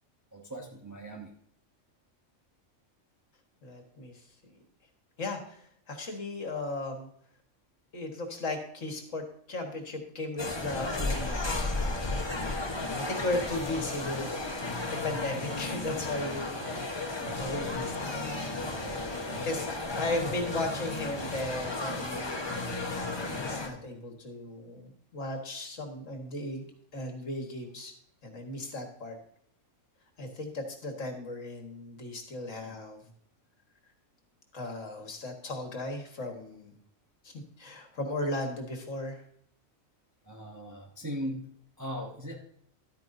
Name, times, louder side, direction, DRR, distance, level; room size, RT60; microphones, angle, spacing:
voice 1, 0.3-1.3 17.1-17.7 18.8-19.5 32.6-32.7 40.2-41.5 41.8-42.3, equal, 15° right, 0 dB, 1.0 m, -40 dB
voice 2, 3.6-4.2 4.5-4.6 5.2-5.6 5.9-7.1 7.9-12.7 13.0-18.2 18.9-22.4 22.9-26.6 26.9-27.9 28.2-29.2 30.2-33.0 34.5-36.8 37.2-39.2, left 2 dB, 70° left, 3 dB, 1.9 m, -36 dB
sound 1, 10.4-23.7, left 2 dB, 20° left, 1.1 m, -34 dB
12.0 x 9.2 x 2.7 m, 0.67 s
omnidirectional pair, 1.4 m